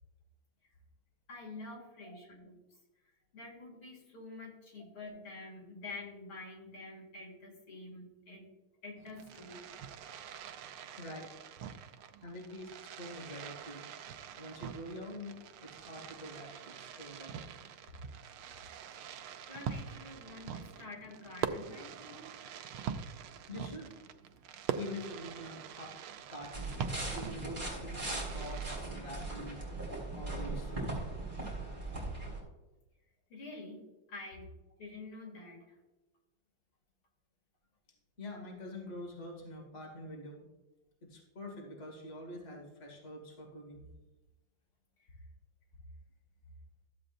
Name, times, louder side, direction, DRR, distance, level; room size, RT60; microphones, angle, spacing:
voice 1, 1.3-2.6 3.3-8.5 8.8-9.6 19.5-22.3 33.3-34.5 34.8-35.6, left 3 dB, 75° left, -2 dB, 3.2 m, -48 dB
Fireworks, 9.0-28.8, right 8 dB, 90° right, 1.5 m, -44 dB
voice 2, 11.0-11.3 12.2-13.9 14.4-17.4 23.5-23.9 24.7-26.0 26.3-29.7 30.1-31.0 38.2-40.4 41.0-43.9, left 1 dB, 35° left, -1 dB, 2.1 m, -46 dB
sound 1, 26.5-32.4, right 2 dB, 20° right, 3.1 m, -39 dB
13.5 x 7.8 x 2.5 m, 1.1 s
omnidirectional pair, 2.3 m